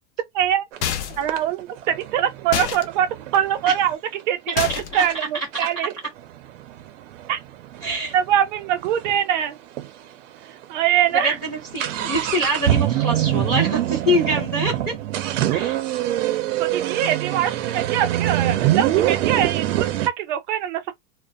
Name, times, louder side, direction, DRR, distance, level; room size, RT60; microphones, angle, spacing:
voice 1, 0.3-0.7 1.2-3.1 3.3-4.0 4.3-4.7 4.9-5.9 7.3-7.4 8.1-9.6 10.7-11.4 15.5-15.6 16.6-20.9, right 10 dB, 40° right, 0.6 m, -23 dB
sound 1, 0.7-0.8 1.3-3.9 4.5-4.6 5.0-5.2 5.5-9.2 9.5-9.6 9.8-9.9 10.5-10.6 10.9-20.1, right 13 dB, 85° right, 0.6 m, -24 dB
sound 2, 0.8-1.3 2.5-2.8 4.6-5.1, left 10 dB, 65° left, 0.6 m, -26 dB
voice 2, 4.5-5.0 7.8-8.2 11.1-14.9 15.5-15.8, equal, 15° left, 0.3 m, -25 dB
2.3 x 2.1 x 2.5 m
supercardioid pair, 170°, 36 cm